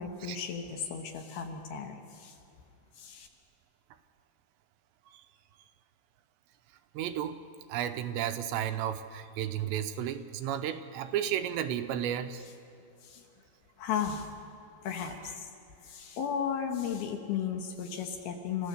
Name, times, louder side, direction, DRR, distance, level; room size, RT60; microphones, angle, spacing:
voice 1, 0.0-2.4 3.0-3.3 13.0-13.3 13.8-14.3 14.8-15.5 15.8-18.7, left 7 dB, 70° left, 4 dB, 2.8 m, -35 dB
voice 2, 6.9-7.4 7.7-12.4, right 10 dB, 85° right, 9 dB, 3.0 m, -33 dB
30.0 x 15.0 x 6.7 m, 2.7 s
omnidirectional pair, 5.1 m